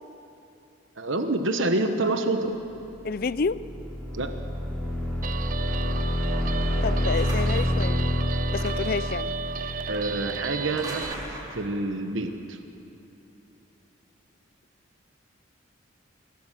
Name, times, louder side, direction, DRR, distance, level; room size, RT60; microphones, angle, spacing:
voice 1, 1.0-2.8 4.1-4.4 9.9-11.1 11.5-12.6, right 2 dB, 75° right, 7 dB, 1.1 m, -27 dB
voice 2, 3.0-3.6 6.8-8.0 8.5-9.3, left 4 dB, 45° left, 17 dB, 0.4 m, -29 dB
sound 1, 3.1-10.9, left 1 dB, ahead, 4.8 m, -28 dB
Guitar, 5.2-11.1, right 6 dB, 40° right, 0.4 m, -34 dB
sound 2, 7.1-7.8 8.5-9.0 10.6-11.7, right 1 dB, 20° right, 4.1 m, -39 dB
25.0 x 16.5 x 7.5 m, 3.0 s
head